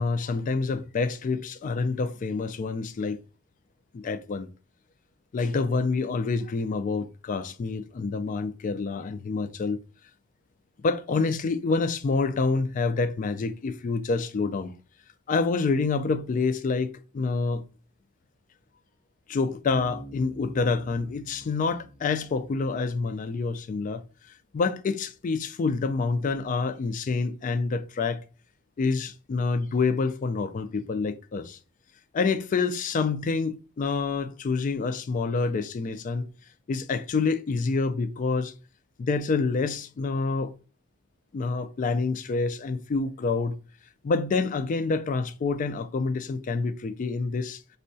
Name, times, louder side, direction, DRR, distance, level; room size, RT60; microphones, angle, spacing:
voice 1, 0.0-3.2 3.9-4.5 5.3-9.8 10.8-14.7 15.3-17.6 19.3-24.0 24.5-28.2 28.8-31.6 32.1-36.3 36.7-38.5 39.0-40.5 41.3-43.6 44.0-47.6, left 4 dB, 40° left, 0.3 m, -27 dB
Bass guitar, 19.7-23.2, right 1 dB, 35° right, 1.6 m, -46 dB
4.4 x 2.1 x 2.6 m
head